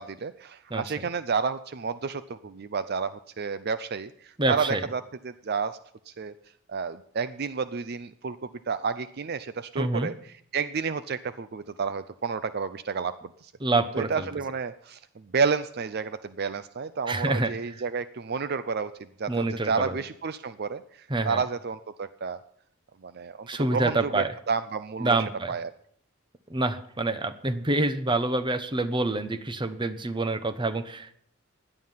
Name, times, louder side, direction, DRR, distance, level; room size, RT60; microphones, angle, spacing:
voice 1, 0.0-5.8 6.1-6.4 6.7-13.5 13.9-22.4 23.0-25.2 25.5-25.7, right 5 dB, 50° right, 13 dB, 0.5 m, -31 dB
voice 2, 4.4-4.8 9.8-10.1 13.6-14.3 17.1-17.5 19.3-20.0 21.1-21.4 23.5-24.3 25.0-25.5 26.5-31.1, right 2 dB, 25° right, 11 dB, 1.0 m, -27 dB
17.0 x 11.0 x 5.7 m, 0.64 s
head